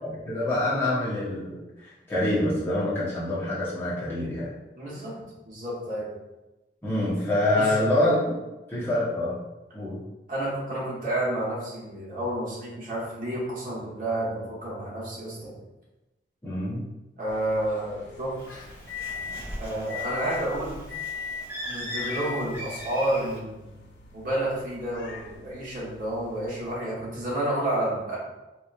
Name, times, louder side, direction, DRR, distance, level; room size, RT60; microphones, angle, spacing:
voice 1, 0.0-4.5 6.8-8.3 8.7-9.4 9.7-10.0 16.4-16.9, left 1 dB, 10° left, -10 dB, 0.9 m, -26 dB
voice 2, 4.7-5.2 5.4-6.1 7.5-7.7 10.3-15.5 17.2-18.6 19.6-20.8 21.7-23.8 24.1-28.2, right 1 dB, 50° right, -6 dB, 1.1 m, -30 dB
sound 1, 17.3-26.7, left 6 dB, 80° left, 0.6 m, -40 dB
Bird, 18.4-23.4, equal, 15° right, 1.1 m, -39 dB
3.9 x 3.0 x 2.4 m, 1.0 s
head